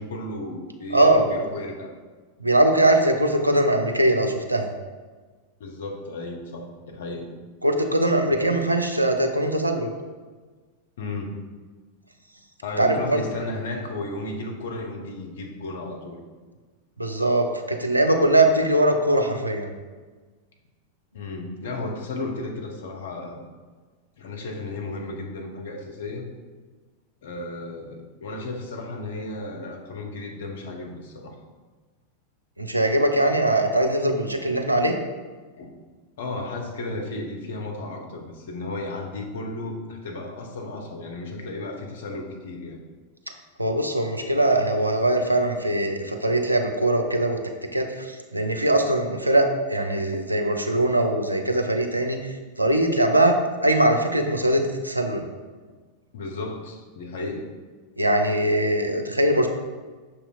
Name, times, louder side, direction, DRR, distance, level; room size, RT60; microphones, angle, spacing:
voice 1, 0.0-1.9 5.6-7.3 8.3-8.5 11.0-11.3 12.6-16.2 21.1-23.5 24.2-26.3 27.2-31.3 35.6-35.7 36.2-42.8 56.1-57.5, left 2 dB, 60° left, 2 dB, 0.6 m, -34 dB
voice 2, 0.9-1.2 2.4-4.7 7.6-9.9 12.8-13.2 17.0-19.7 32.6-34.9 43.6-47.4 47.7-53.4 53.6-55.3 58.0-59.5, right 1 dB, 85° right, 4 dB, 0.4 m, -21 dB
6.3 x 2.8 x 2.3 m, 1.4 s
figure-of-eight pair, 90°, 0 cm